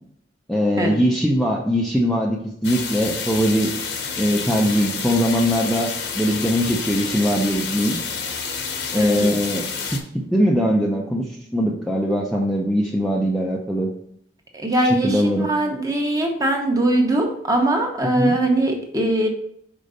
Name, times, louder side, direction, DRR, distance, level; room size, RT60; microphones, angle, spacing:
voice 1, 0.5-3.7 4.2-8.0 8.9-9.6 10.1-11.3 11.5-13.9 15.0-15.5 18.1-18.4, equal, ahead, -3 dB, 0.6 m, -21 dB
sound 1, 2.6-10.0, left 5 dB, 70° left, 1.0 m, -29 dB
voice 2, 8.9-9.3 14.5-19.3, right 1 dB, 20° right, 2 dB, 1.1 m, -21 dB
5.3 x 5.0 x 4.0 m, 0.70 s
head